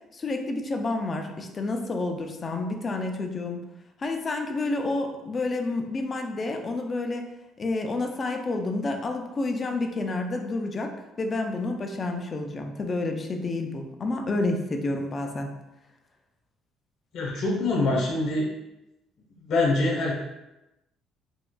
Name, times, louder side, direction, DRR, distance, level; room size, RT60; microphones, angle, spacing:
voice 1, 0.1-3.6 4.0-7.3 7.6-15.6, left 2 dB, 25° left, 4 dB, 0.4 m, -29 dB
voice 2, 17.1-18.5 19.5-20.2, left 2 dB, 60° left, -2 dB, 0.9 m, -24 dB
4.3 x 2.3 x 2.3 m, 0.95 s
cardioid pair, 145°, 0 cm